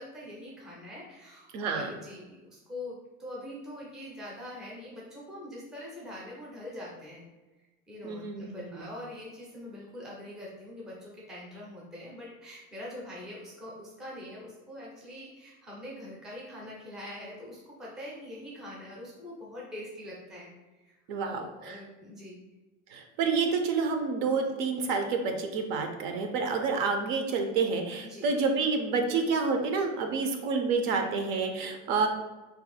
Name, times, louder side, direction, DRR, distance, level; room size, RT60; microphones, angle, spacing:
voice 1, 0.0-7.3 7.9-22.4 28.0-28.3 31.6-31.7, left 1 dB, ahead, -5 dB, 0.4 m, -43 dB
voice 2, 1.5-1.9 8.0-8.8 21.1-21.8 22.9-32.1, right 4 dB, 65° right, 5 dB, 0.5 m, -29 dB
2.6 x 2.3 x 4.0 m, 1.1 s
cardioid pair, 175°, 33 cm